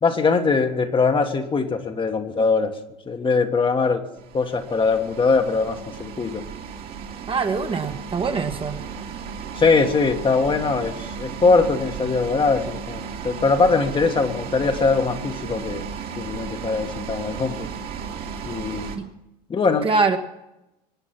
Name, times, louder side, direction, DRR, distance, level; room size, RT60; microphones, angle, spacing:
voice 1, 0.0-2.7 3.1-4.0 4.3-6.4 9.5-15.9 16.2-17.7 18.4-18.9 19.5-19.9, left 4 dB, 25° left, 5 dB, 1.6 m, -21 dB
sound 1, 4.2-19.0, right 6 dB, 50° right, 2.4 m, -34 dB
voice 2, 7.3-8.8 19.8-20.2, right 4 dB, 25° right, 5 dB, 1.5 m, -23 dB
24.0 x 9.0 x 6.0 m, 0.93 s
hypercardioid pair, 85°, 20 cm